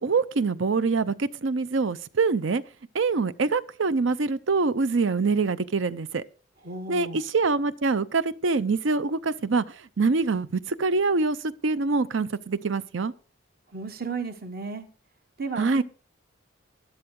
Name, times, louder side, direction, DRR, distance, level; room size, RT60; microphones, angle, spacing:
voice 1, 0.0-2.6 2.9-6.2 6.9-9.6 10.0-13.1 15.6-15.8, right 4 dB, 65° right, 0.6 m, -25 dB
voice 2, 6.6-7.2 13.7-14.9 15.4-15.8, right 4 dB, 45° right, 1.2 m, -34 dB
12.5 x 12.0 x 3.8 m
head